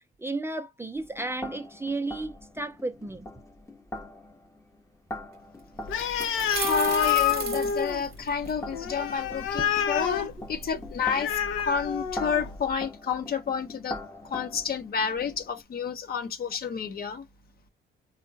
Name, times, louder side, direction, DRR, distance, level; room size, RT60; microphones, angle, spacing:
voice 1, 0.2-3.3, right 2 dB, 10° right, 0.5 m, -33 dB
sound 1, 1.0-15.6, left 1 dB, 15° left, 0.7 m, -43 dB
sound 2, 5.3-5.4 6.0-8.5, right 6 dB, 50° right, 0.9 m, -35 dB
Animal, 5.8-12.6, left 8 dB, 80° left, 0.6 m, -29 dB
voice 2, 6.5-14.0 14.3-17.2, left 6 dB, 50° left, 0.8 m, -30 dB
3.6 x 2.2 x 2.5 m
cardioid pair, 90°, 20 cm